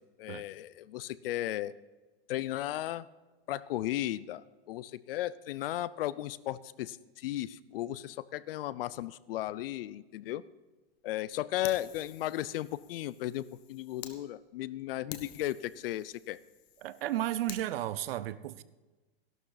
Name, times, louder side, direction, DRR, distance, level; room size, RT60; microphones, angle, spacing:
voice 1, 0.2-1.7 2.3-3.1 3.5-10.4 11.0-16.4, left 14 dB, 65° left, 19 dB, 0.6 m, -35 dB
Fire, 11.6-14.2 14.6-14.7 15.1-17.6, left 11 dB, 40° left, 1.3 m, -49 dB
voice 2, 16.8-18.6, right 13 dB, 70° right, 16 dB, 0.9 m, -33 dB
16.0 x 12.0 x 4.1 m, 1.2 s
supercardioid pair, 145°, 30 cm